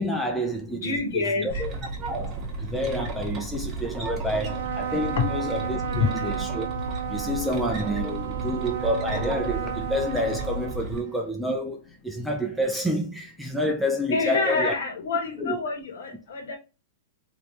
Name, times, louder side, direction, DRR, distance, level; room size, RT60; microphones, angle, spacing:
voice 1, 0.0-1.7 2.1-6.7 7.1-14.7 15.4-15.6 16.5-16.6, equal, ahead, 0.5 m, -29 dB
voice 2, 0.8-1.6 5.2-5.3 5.8-6.1 14.1-16.6, left 4 dB, 80° left, 1.4 m, -27 dB
sound 1, 1.5-11.0, right 3 dB, 25° right, 1.0 m, -33 dB
Trumpet, 4.4-11.2, right 8 dB, 80° right, 0.5 m, -33 dB
3.1 x 2.7 x 3.0 m
hypercardioid pair, 145°, 0 cm